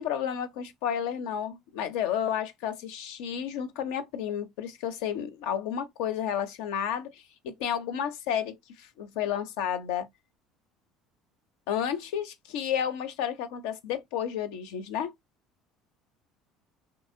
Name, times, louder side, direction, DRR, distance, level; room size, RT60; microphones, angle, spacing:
voice 1, 0.0-10.1 11.7-15.1, left 9 dB, 65° left, 0.5 m, -31 dB
2.9 x 2.6 x 2.6 m
figure-of-eight pair, 60°, 0 cm